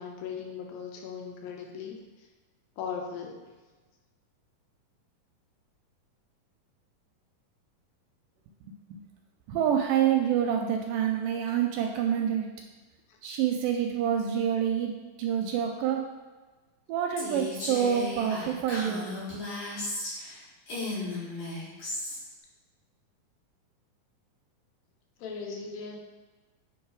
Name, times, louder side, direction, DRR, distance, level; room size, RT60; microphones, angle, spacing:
voice 1, 0.0-2.0 2.8-3.4 13.1-13.2 25.2-26.0, left 6 dB, 90° left, 1 dB, 2.6 m, -38 dB
voice 2, 9.5-12.5 13.2-16.1 16.9-19.1, right 9 dB, 80° right, 3 dB, 2.0 m, -27 dB
Female speech woman speaking, 17.2-20.3 20.7-22.2, left 2 dB, 70° left, 3.7 m, -35 dB
8.1 x 3.1 x 4.7 m, 1.3 s
omnidirectional pair, 4.2 m